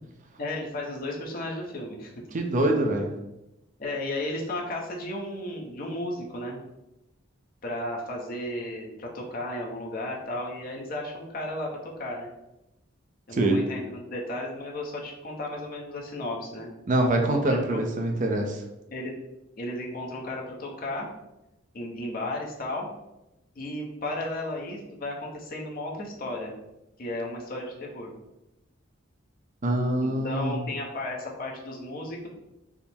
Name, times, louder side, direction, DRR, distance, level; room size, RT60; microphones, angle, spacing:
voice 1, 0.4-2.1 3.8-6.6 7.6-12.3 13.3-16.7 17.4-17.8 18.9-19.1 19.6-21.1 21.7-22.9 23.5-26.5 27.0-28.1 30.0-32.3, left 1 dB, 45° left, -2 dB, 0.7 m, -34 dB
voice 2, 2.3-3.1 13.3-13.6 16.9-18.6 29.6-30.6, right 1 dB, 40° right, 3 dB, 0.5 m, -24 dB
3.5 x 2.0 x 4.3 m, 0.93 s
head